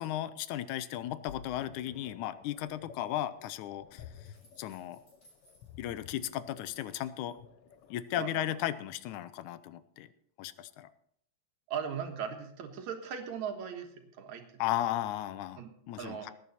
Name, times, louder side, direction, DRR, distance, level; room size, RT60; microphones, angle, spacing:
voice 1, 0.0-4.1 4.6-5.0 5.8-7.4 7.9-10.1 10.4-10.9 14.6-15.6 15.9-16.3, left 13 dB, 85° left, 15 dB, 2.1 m, -35 dB
sound 1, 1.0-8.0, left 8 dB, 65° left, 1.6 m, -53 dB
sound 2, 4.0-7.3 7.7-8.4, equal, 35° left, 4.6 m, -66 dB
voice 2, 8.2-8.6 11.7-14.4 15.6-15.7 16.0-16.3, right 7 dB, 75° right, 5 dB, 2.8 m, -38 dB
19.5 x 9.3 x 4.2 m, 0.68 s
omnidirectional pair, 3.4 m